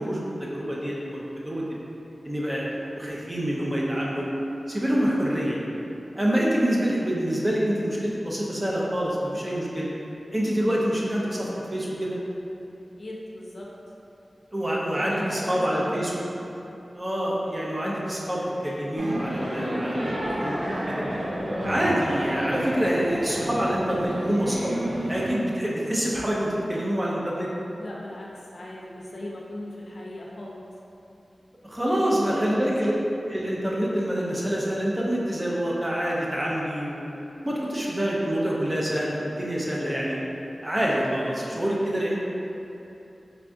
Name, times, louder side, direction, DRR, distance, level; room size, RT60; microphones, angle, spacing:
voice 1, 0.0-1.8 2.2-4.3 4.7-5.6 6.2-9.9 10.3-12.2 14.5-16.2 16.9-21.0 21.6-24.7 25.1-27.5 31.6-32.9 33.2-37.1 37.4-40.2 40.6-42.1, equal, 25° right, -5 dB, 0.6 m, -26 dB
voice 2, 13.0-13.7 15.0-16.1 19.6-19.9 27.8-30.6 32.2-32.7, left 1 dB, 65° left, -3 dB, 0.5 m, -38 dB
sound 1, 19.0-25.3, equal, 70° right, 0.5 m, -30 dB
3.4 x 3.4 x 2.6 m, 2.9 s
wide cardioid pair, 75°, 0 cm